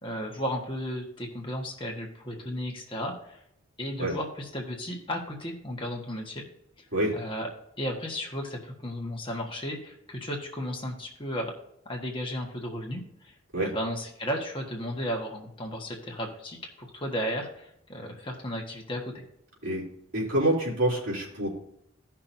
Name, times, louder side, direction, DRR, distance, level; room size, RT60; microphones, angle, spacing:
voice 1, 0.0-3.4 3.8-6.4 6.8-6.9 7.1-7.5 7.8-11.5 11.8-19.2, equal, 25° left, 0 dB, 1.4 m, -34 dB
voice 2, 20.1-21.5, right 1 dB, 65° right, -4 dB, 3.3 m, -26 dB
15.5 x 5.8 x 2.7 m, 0.76 s
head